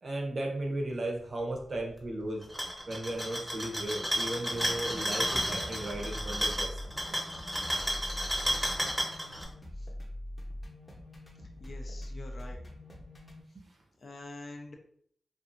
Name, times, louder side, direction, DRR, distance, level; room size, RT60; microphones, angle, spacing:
voice 1, 0.0-2.4 2.9-6.8 13.5-13.7, right 1 dB, 50° right, 1 dB, 0.7 m, -35 dB
sound 1, 2.4-9.4, equal, ahead, 0.8 m, -32 dB
sound 2, 5.3-13.4, left 1 dB, 30° left, 0.8 m, -43 dB
voice 2, 11.6-12.6 14.0-14.7, left 2 dB, 55° left, 2 dB, 0.5 m, -45 dB
2.5 x 2.5 x 2.5 m, 0.65 s
cardioid pair, 65°, 0 cm